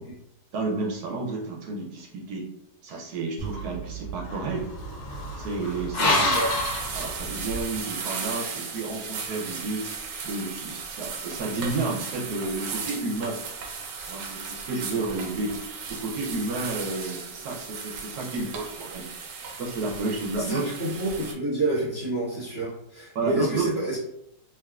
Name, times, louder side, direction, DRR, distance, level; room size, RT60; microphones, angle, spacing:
voice 1, 0.5-2.4 2.8-4.7 5.4-6.2 6.9-9.8 10.2-13.4 14.1-15.5 15.9-19.0 19.6-20.6 23.1-23.7, right 3 dB, 70° right, -2 dB, 1.1 m, -31 dB
sound 1, 3.4-7.7, left 1 dB, 70° left, 1.3 m, -29 dB
voice 2, 5.9-6.6 20.5-24.0, right 1 dB, 35° right, -10 dB, 0.9 m, -28 dB
sound 2, 6.3-21.3, right 5 dB, 90° right, 1.3 m, -36 dB
3.5 x 2.5 x 2.3 m, 0.80 s
omnidirectional pair, 1.9 m